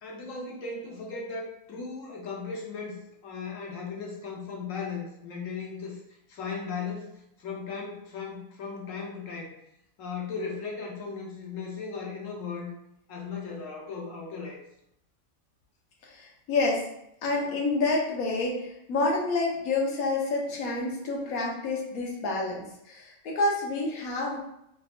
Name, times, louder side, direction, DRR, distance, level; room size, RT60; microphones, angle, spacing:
voice 1, 0.0-6.0 6.3-9.5 10.0-12.7 13.1-14.6, left 5 dB, 70° left, -2 dB, 1.1 m, -37 dB
voice 2, 16.0-16.8 17.2-24.5, left 2 dB, 90° left, -1 dB, 1.2 m, -28 dB
3.5 x 2.8 x 2.4 m, 0.79 s
omnidirectional pair, 1.5 m